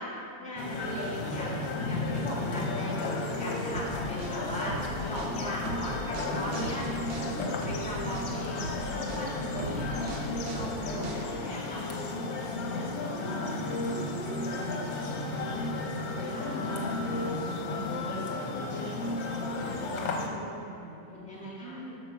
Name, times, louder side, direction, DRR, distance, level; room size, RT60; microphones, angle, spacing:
voice 1, 0.0-4.8 5.1-8.6 8.9-9.9 10.5-11.9 16.2-16.7 21.1-21.8, equal, 5° left, -7 dB, 1.7 m, -39 dB
sound 1, 0.6-20.3, left 2 dB, 75° left, 1.7 m, -33 dB
sound 2, 3.7-11.6, right 2 dB, 90° right, 1.8 m, -39 dB
sound 3, 5.3-9.3, right 1 dB, 45° right, 2.4 m, -50 dB
voice 2, 12.7-13.6 13.9-22.0, right 3 dB, 75° right, -3 dB, 1.5 m, -44 dB
8.8 x 6.0 x 5.8 m, 2.9 s
omnidirectional pair, 2.0 m